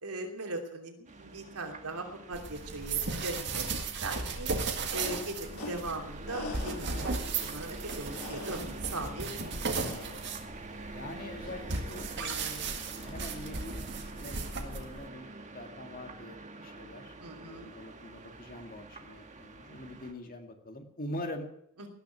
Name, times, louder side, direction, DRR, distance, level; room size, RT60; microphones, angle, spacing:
voice 1, 0.0-3.6 4.0-4.5 4.9-9.5 17.2-17.7 21.8-21.9, right 2 dB, 80° right, 2 dB, 3.0 m, -39 dB
sound 1, 1.1-20.1, right 2 dB, 30° right, 1.7 m, -47 dB
sound 2, 2.3-15.1, right 4 dB, 50° right, 2.0 m, -36 dB
sound 3, 4.8-15.1, left 2 dB, 75° left, 3.0 m, -47 dB
voice 2, 9.4-10.0 10.9-21.5, left 1 dB, 40° left, 5 dB, 2.2 m, -44 dB
18.5 x 6.9 x 9.7 m, 0.72 s
head